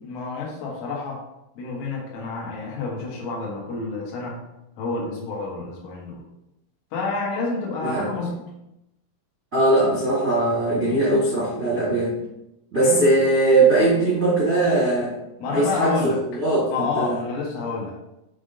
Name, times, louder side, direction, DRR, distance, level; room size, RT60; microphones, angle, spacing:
voice 1, 0.0-1.2 1.6-4.4 4.8-6.2 6.9-8.4 12.8-13.1 15.4-16.2 16.7-18.0, left 3 dB, 75° left, -3 dB, 4.0 m, -29 dB
voice 2, 9.5-12.1 12.7-15.1 15.5-17.2, right 2 dB, 55° right, -8 dB, 0.9 m, -20 dB
8.2 x 3.6 x 3.8 m, 0.87 s
omnidirectional pair, 5.8 m